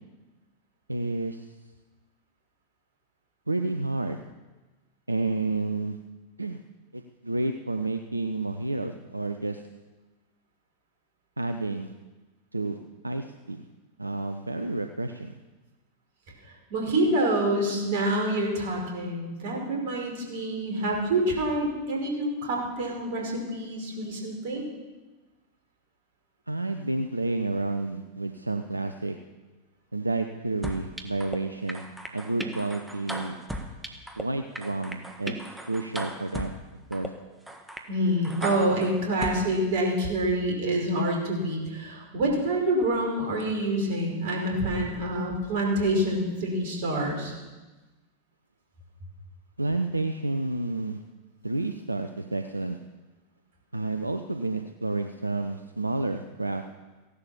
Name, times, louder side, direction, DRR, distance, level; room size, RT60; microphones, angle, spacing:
voice 1, 0.9-1.5 3.5-4.2 5.1-6.0 6.4-6.6 6.9-9.6 11.4-11.9 12.5-12.8 13.0-13.6 14.0-15.3 26.5-29.2 29.9-31.8 32.1-33.4 34.2-35.4 35.7-36.5 36.9-37.1 49.6-51.0 51.4-52.8 53.7-56.6, right 2 dB, 85° right, 7 dB, 0.7 m, -30 dB
voice 2, 16.7-24.6 37.9-47.3, right 1 dB, 50° right, 0 dB, 5.4 m, -27 dB
sound 1, 30.6-31.4 31.7-34.2 34.5-36.5 36.9-37.1 37.5-37.8 38.2-39.4, right 1 dB, 5° right, 1.7 m, -37 dB
16.5 x 11.5 x 7.2 m, 1.2 s
figure-of-eight pair, 90°, 0 cm